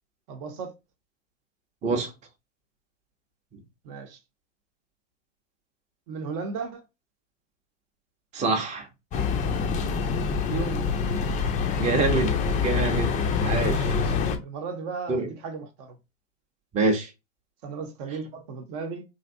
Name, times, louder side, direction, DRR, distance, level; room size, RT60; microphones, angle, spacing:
voice 1, 0.3-0.7 3.8-4.2 6.1-6.8 10.4-11.4 13.1-13.2 13.7-14.1 14.4-16.0 17.6-19.0, right 5 dB, 45° right, 0.8 m, -36 dB
voice 2, 8.3-8.9 11.8-12.4 12.6-13.2 13.4-13.9 15.1-15.3 16.7-17.1, right 3 dB, 20° right, 0.7 m, -25 dB
sound 1, 9.1-14.4, left 5 dB, 20° left, 0.4 m, -25 dB
3.2 x 2.6 x 2.5 m
hypercardioid pair, 105°, 39 cm